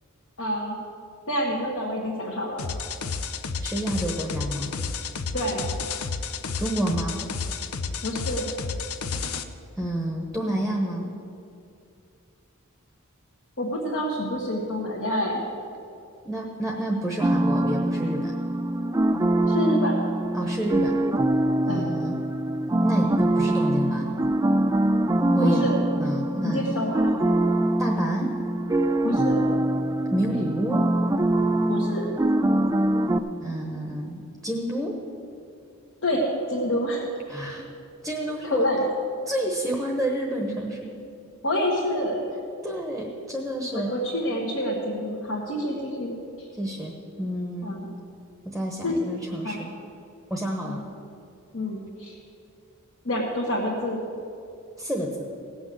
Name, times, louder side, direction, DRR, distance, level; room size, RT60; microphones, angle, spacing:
voice 1, 0.4-0.8 1.3-2.7 5.3-5.6 8.0-8.5 13.6-15.4 19.5-20.0 21.7-21.9 25.4-25.8 26.4-27.1 29.0-29.5 31.7-32.1 36.0-37.0 38.4-38.8 41.4-42.3 43.7-46.5 47.6-47.9 48.8-48.9 49.4-49.7 50.6-50.8 51.5-52.1 53.0-54.0, equal, 60° left, -4 dB, 1.7 m, -27 dB
sound 1, 2.6-9.4, left 5 dB, 80° left, 0.7 m, -31 dB
voice 2, 3.6-4.7 6.6-7.2 9.8-11.1 16.2-18.3 20.3-21.0 21.7-22.2 22.8-24.4 25.4-25.7 26.0-26.7 27.8-28.4 30.1-30.9 33.4-35.0 37.3-37.6 38.0-38.7 39.3-41.0 42.6-43.9 46.5-47.7 48.4-49.7 50.3-50.8 54.8-55.2, right 1 dB, ahead, 0 dB, 1.0 m, -29 dB
sound 2, 17.2-33.2, right 1 dB, 15° right, 0.3 m, -23 dB
17.0 x 6.2 x 7.8 m, 2.6 s
head